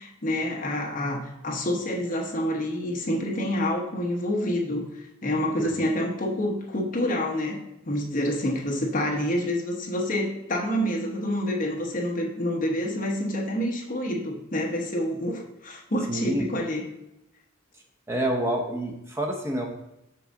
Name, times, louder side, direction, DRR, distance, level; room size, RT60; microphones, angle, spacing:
voice 1, 0.0-4.9 5.2-7.6 7.9-16.8, left 1 dB, 40° left, 0 dB, 1.0 m, -27 dB
voice 2, 5.6-5.9 16.1-16.4 17.7-19.6, right 1 dB, 15° right, 0 dB, 0.7 m, -28 dB
6.2 x 5.8 x 3.7 m, 0.89 s
head